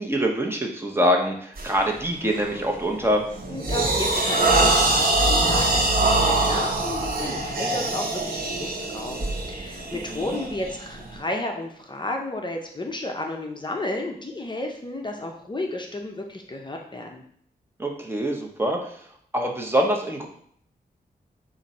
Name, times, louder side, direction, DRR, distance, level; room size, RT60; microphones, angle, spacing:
voice 1, 0.0-3.2 9.9-10.3 17.8-18.8 19.3-20.3, equal, 15° right, 1 dB, 0.6 m, -24 dB
sound 1, 1.6-1.8 2.3-2.6 3.0-11.1, right 2 dB, 65° right, 0.9 m, -23 dB
voice 2, 3.5-17.2, left 2 dB, 30° left, 2 dB, 0.6 m, -32 dB
5.0 x 2.6 x 4.1 m, 0.63 s
wide cardioid pair, 115°, 16 cm